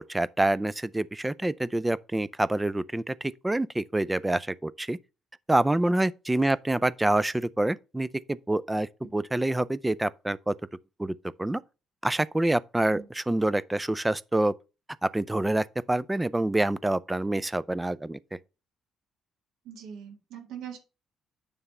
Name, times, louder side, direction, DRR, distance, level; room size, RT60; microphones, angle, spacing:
voice 1, 0.1-5.0 5.5-10.5 11.0-11.6 12.0-14.5 15.0-18.4, right 1 dB, 10° right, 0.4 m, -27 dB
voice 2, 19.7-20.8, right 8 dB, 85° right, 1.9 m, -41 dB
9.5 x 3.4 x 5.4 m
cardioid pair, 90°, 0 cm